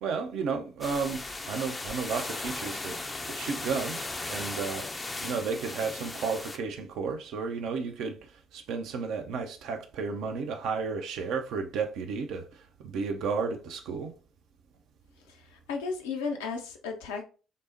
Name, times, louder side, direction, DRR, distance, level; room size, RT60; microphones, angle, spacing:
voice 1, 0.0-3.0 3.3-4.9 5.2-14.1, right 5 dB, 60° right, 0.5 m, -33 dB
sound 1, 0.8-6.6, left 2 dB, 20° left, 0.5 m, -37 dB
voice 2, 15.5-17.2, left 5 dB, 70° left, 0.6 m, -34 dB
5.2 x 2.0 x 2.6 m
figure-of-eight pair, 50°, 0 cm